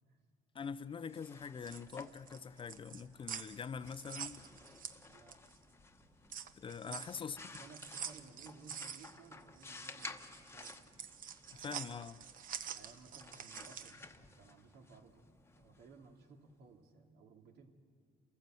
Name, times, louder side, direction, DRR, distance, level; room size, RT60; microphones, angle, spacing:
voice 1, 0.5-4.5 6.6-7.6 11.5-12.2, left 6 dB, 30° left, 0.5 m, -44 dB
sound 1, 0.9-16.6, left 3 dB, 15° left, 1.0 m, -55 dB
sound 2, 1.6-5.6 5.9-14.0, right 8 dB, 55° right, 1.0 m, -47 dB
voice 2, 4.9-5.4 6.8-10.9 11.5-12.1 12.7-17.7, right 4 dB, 75° right, 2.5 m, -59 dB
28.5 x 14.5 x 7.7 m
cardioid pair, 110°, 17 cm